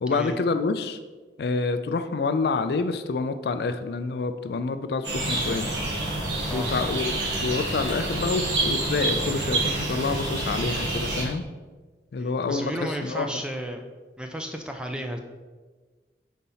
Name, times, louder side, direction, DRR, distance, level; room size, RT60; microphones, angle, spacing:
voice 1, 0.0-1.0 1.4-5.7 6.5-11.4 12.1-13.4, left 4 dB, 65° left, 10 dB, 0.3 m, -27 dB
sound 1, 5.0-11.2, right 2 dB, 80° right, 1.5 m, -28 dB
voice 2, 12.2-13.9 14.2-15.2, equal, 5° right, 3 dB, 0.4 m, -33 dB
4.3 x 4.0 x 5.5 m, 1.3 s
head